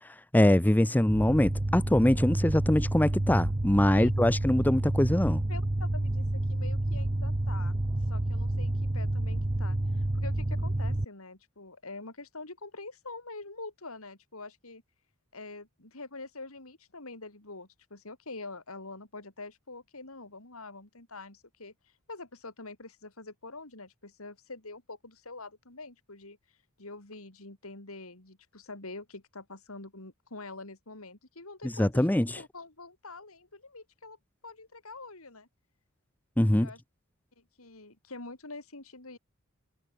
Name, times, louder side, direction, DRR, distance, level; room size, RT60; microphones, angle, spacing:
voice 1, 0.3-5.4 31.6-32.4 36.4-36.7, left 1 dB, 10° left, 0.5 m, -23 dB
sound 1, 1.1-11.1, right 1 dB, 25° right, 0.9 m, -29 dB
voice 2, 5.5-7.8 8.1-14.8 15.3-21.7 22.1-26.4 26.8-32.1 32.4-34.2 34.4-35.5 36.5-36.8 37.4-39.2, left 3 dB, 75° left, 4.1 m, -45 dB
head